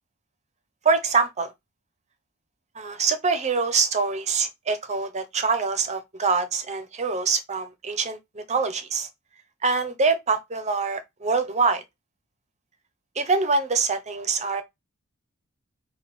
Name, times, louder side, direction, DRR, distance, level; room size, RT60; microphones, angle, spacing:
voice 1, 0.8-1.5 2.7-9.1 9.6-11.8 13.2-14.6, right 4 dB, 30° right, 0.7 m, -24 dB
4.2 x 2.3 x 3.6 m
head